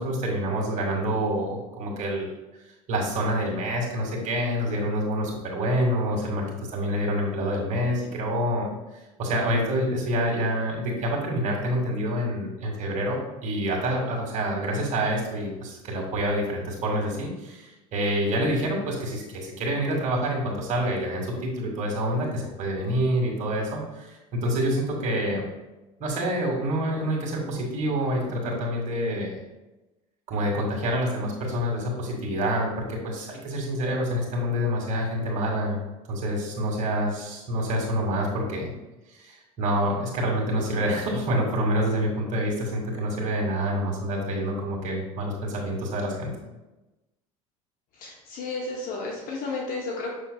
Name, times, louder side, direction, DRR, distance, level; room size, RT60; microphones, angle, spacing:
voice 1, 0.0-2.3 2.9-6.5 6.7-8.7 9.2-25.5 26.0-29.4 30.3-35.8 36.1-38.7 39.1-46.3, equal, 45° right, 0 dB, 2.1 m, -27 dB
voice 2, 48.0-50.1, left 3 dB, 55° left, -1 dB, 1.0 m, -32 dB
6.5 x 6.3 x 2.3 m, 1.1 s
hypercardioid pair, 80°, 18 cm